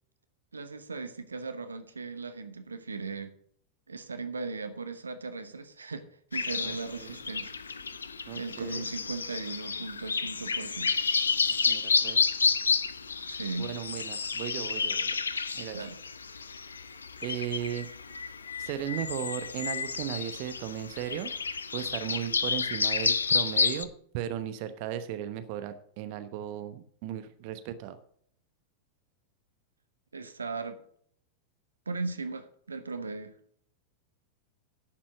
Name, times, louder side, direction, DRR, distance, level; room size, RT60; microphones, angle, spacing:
voice 1, 0.5-3.3 3.9-6.1 6.3-7.5 8.3-11.0 13.3-13.7 15.7-16.0 30.1-30.8 31.9-33.3, right 3 dB, 75° right, 10 dB, 1.0 m, -37 dB
sound 1, 6.3-23.8, left 5 dB, 75° left, 0.7 m, -30 dB
voice 2, 6.6-7.2 8.3-8.8 11.7-12.3 13.6-15.2 15.5-15.8 17.2-17.9 18.6-21.3 21.7-28.0, right 11 dB, 45° right, 11 dB, 0.9 m, -36 dB
11.0 x 7.4 x 6.4 m, 0.63 s
figure-of-eight pair, 90°, 0 cm